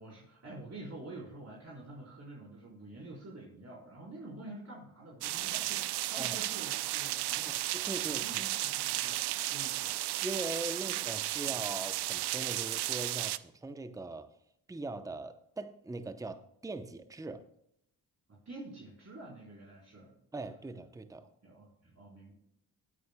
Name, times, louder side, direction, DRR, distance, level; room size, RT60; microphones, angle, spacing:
voice 1, 0.0-7.5 8.0-9.9 11.4-11.6 18.3-20.1 21.4-22.3, right 2 dB, 40° right, 4.0 m, -48 dB
sound 1, 5.2-13.4, right 15 dB, 70° right, 0.6 m, -34 dB
voice 2, 7.5-8.4 10.2-14.3 14.7-17.5 20.3-21.3, right 2 dB, 10° right, 0.7 m, -41 dB
19.5 x 9.3 x 2.2 m
cardioid pair, 75°, 41 cm